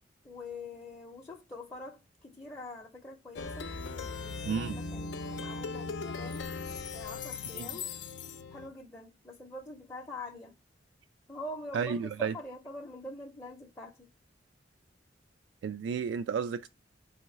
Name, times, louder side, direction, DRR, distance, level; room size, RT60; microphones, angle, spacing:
voice 1, 0.2-6.5 6.9-7.9 8.5-10.5 11.3-14.1, left 2 dB, 15° left, 0.6 m, -45 dB
Plucked string instrument, 3.4-8.7, left 4 dB, 70° left, 0.5 m, -39 dB
voice 2, 4.5-4.8 7.5-7.7 11.7-12.3 15.6-16.7, right 6 dB, 75° right, 0.3 m, -32 dB
3.8 x 2.8 x 4.4 m
head